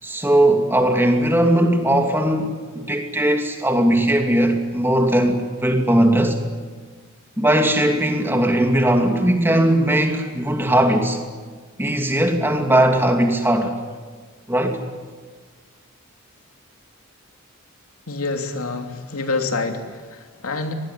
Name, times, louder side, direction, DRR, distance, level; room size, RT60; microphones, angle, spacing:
voice 1, 0.0-6.4 7.4-11.2 11.8-13.8 14.5-14.8, right 1 dB, 10° right, 4 dB, 2.5 m, -19 dB
voice 2, 18.1-20.7, left 3 dB, 90° left, 4 dB, 3.0 m, -27 dB
25.0 x 20.0 x 10.0 m, 1.5 s
head